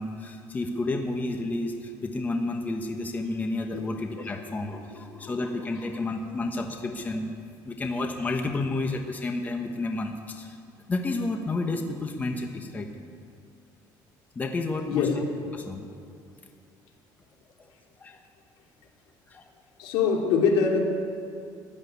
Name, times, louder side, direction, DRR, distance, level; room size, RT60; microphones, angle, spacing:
voice 1, 0.0-7.3 7.6-10.6 10.9-12.9 14.3-15.1 15.5-15.9 17.6-17.7 18.0-18.2 19.3-19.4, left 2 dB, 20° left, 4 dB, 1.0 m, -31 dB
voice 2, 4.9-5.3 14.9-15.1 19.8-20.8, left 6 dB, 85° left, 0 dB, 2.7 m, -24 dB
13.5 x 9.0 x 10.0 m, 2.3 s
cardioid pair, 145°, 8 cm